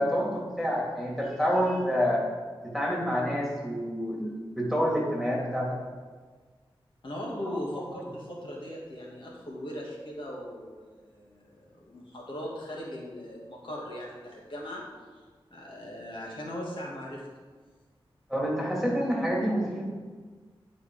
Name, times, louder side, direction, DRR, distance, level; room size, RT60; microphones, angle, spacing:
voice 1, 0.0-2.2 2.6-5.8 18.3-19.8, equal, ahead, -4 dB, 2.8 m, -28 dB
voice 2, 7.0-14.8 15.1-15.2 15.5-17.3, equal, 65° left, -3 dB, 2.0 m, -39 dB
11.0 x 5.0 x 4.9 m, 1.5 s
wide cardioid pair, 70°, 9 cm